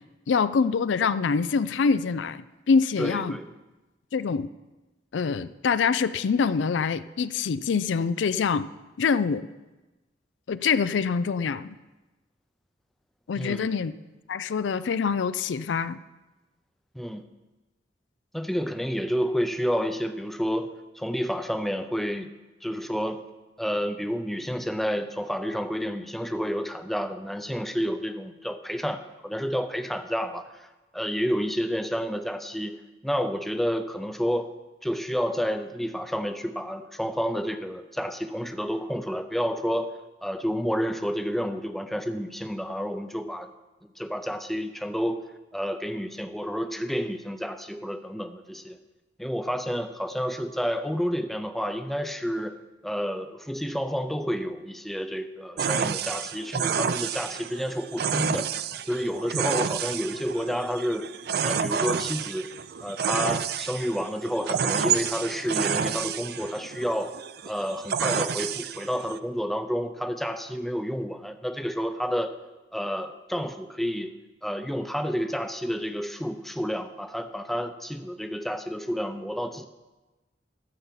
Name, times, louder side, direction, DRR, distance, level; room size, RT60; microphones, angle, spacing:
voice 1, 0.3-3.4 4.1-4.5 5.1-8.7 9.0-9.5 10.5-11.8 13.3-13.9 14.3-16.0, left 5 dB, 85° left, 15 dB, 0.4 m, -25 dB
voice 2, 3.0-3.5 13.4-13.7 16.9-17.2 18.3-22.3 22.6-23.2 23.6-30.7 30.9-32.8 33.0-34.5 34.8-43.5 44.0-45.2 45.5-48.8 49.2-58.5 58.9-61.1 61.4-62.5 62.8-67.1 67.4-72.4 72.7-74.1 74.4-79.7, equal, ahead, 9 dB, 0.5 m, -30 dB
sound 1, 55.6-69.2, right 7 dB, 60° right, 0.5 m, -29 dB
13.0 x 5.6 x 7.4 m, 1.1 s
head